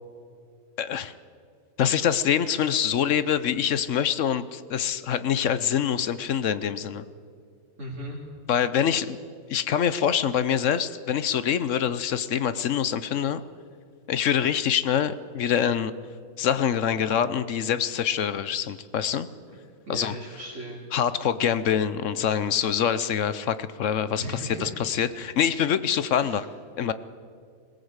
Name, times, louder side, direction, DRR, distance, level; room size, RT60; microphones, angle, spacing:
voice 1, 0.8-1.1 1.8-7.0 8.5-9.2 9.5-13.4 14.1-15.9 16.4-19.3 19.9-20.2 20.9-26.5 26.8-26.9, left 8 dB, 60° left, 14 dB, 1.1 m, -25 dB
voice 2, 7.8-8.2 19.5-19.6 19.8-20.8 24.2-24.8 26.2-26.4, right 1 dB, 55° right, -5 dB, 3.4 m, -37 dB
21.0 x 17.5 x 8.1 m, 2.3 s
omnidirectional pair, 1.5 m